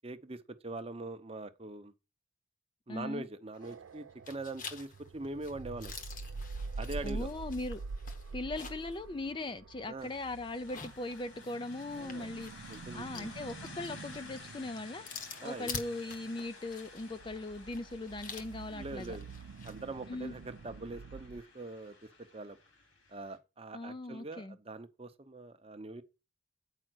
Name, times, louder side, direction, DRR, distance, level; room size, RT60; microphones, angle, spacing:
voice 1, 0.0-1.9 2.9-5.9 6.8-7.3 9.9-10.1 11.9-12.3 12.7-13.3 15.4-15.7 18.7-19.3 19.6-22.6 23.1-26.0, right 2 dB, 30° right, 0.7 m, -43 dB
voice 2, 2.9-3.2 7.0-7.8 8.3-15.1 15.4-19.2 20.1-20.3 23.7-24.6, left 2 dB, 25° left, 0.4 m, -39 dB
sound 1, 3.5-3.9 4.3-9.0 9.3-9.4 10.5-19.8, left 5 dB, 40° left, 1.2 m, -48 dB
sound 2, 3.6-21.4, right 4 dB, 75° right, 0.4 m, -46 dB
sound 3, 10.0-23.4, left 3 dB, 60° left, 2.5 m, -53 dB
9.0 x 5.0 x 6.2 m
head